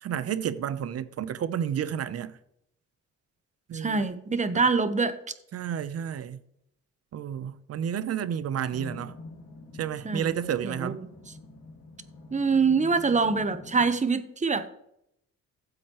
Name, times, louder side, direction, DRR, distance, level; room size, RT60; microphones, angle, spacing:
voice 1, 0.0-2.4 3.7-4.1 4.5-4.6 5.5-6.4 7.1-9.1 9.7-11.0, right 9 dB, 55° right, 0.8 m, -31 dB
voice 2, 3.7-5.2 10.0-10.3 10.6-11.0 12.3-14.7, right 4 dB, 25° right, 1.0 m, -25 dB
sound 1, 8.7-13.9, left 3 dB, 60° left, 2.1 m, -46 dB
14.5 x 7.8 x 3.1 m
cardioid pair, 90°, 30 cm